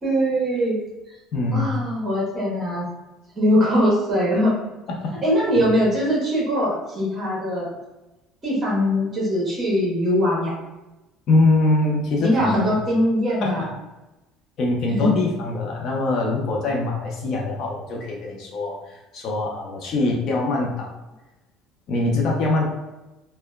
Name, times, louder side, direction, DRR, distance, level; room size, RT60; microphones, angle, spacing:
voice 1, 0.0-0.8 1.5-2.9 3.3-4.5 5.2-7.7 8.4-10.5 12.2-13.7 14.9-15.2, equal, 25° right, -5 dB, 1.0 m, -21 dB
voice 2, 1.3-1.7 4.9-5.1 11.3-12.7 13.4-13.5 14.6-20.9 21.9-22.7, left 2 dB, 50° left, -1 dB, 0.4 m, -23 dB
2.8 x 2.1 x 2.2 m, 1.0 s
cardioid pair, 155°, 0 cm